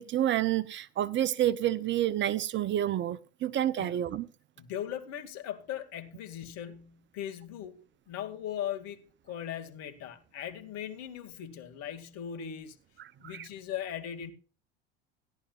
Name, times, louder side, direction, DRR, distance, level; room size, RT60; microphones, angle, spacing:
voice 1, 0.0-4.3 13.2-13.5, right 12 dB, 35° right, 0.8 m, -29 dB
voice 2, 4.6-7.8 8.1-12.8 13.2-14.3, left 10 dB, 55° left, 2.4 m, -39 dB
17.0 x 11.5 x 2.5 m
hypercardioid pair, 75°, 31 cm